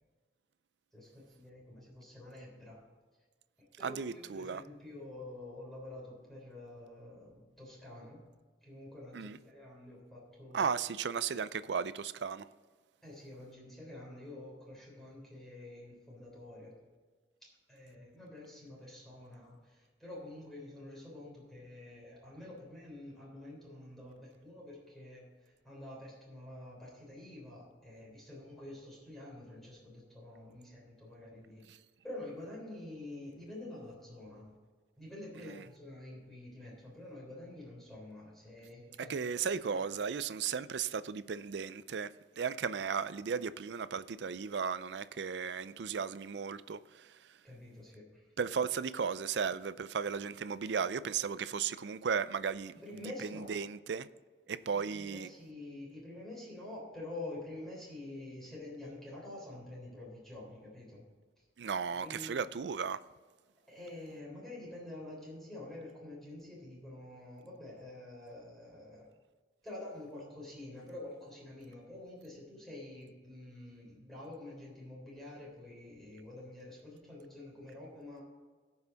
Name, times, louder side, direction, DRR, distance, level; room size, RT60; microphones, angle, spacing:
voice 1, 0.9-2.8 3.6-8.2 8.6-10.7 13.0-16.7 17.4-31.6 32.0-34.5 35.0-39.4 39.7-39.9 47.4-48.3 52.7-53.5 54.7-61.1 62.0-62.4 63.7-69.1 69.6-78.2, left 1 dB, ahead, 3.5 m, -48 dB
voice 2, 3.8-4.6 9.1-9.4 10.5-12.5 31.7-31.8 35.4-35.6 39.1-47.1 48.4-54.1 54.5-55.3 61.6-63.0, right 6 dB, 75° right, 0.4 m, -35 dB
17.0 x 5.8 x 4.0 m
head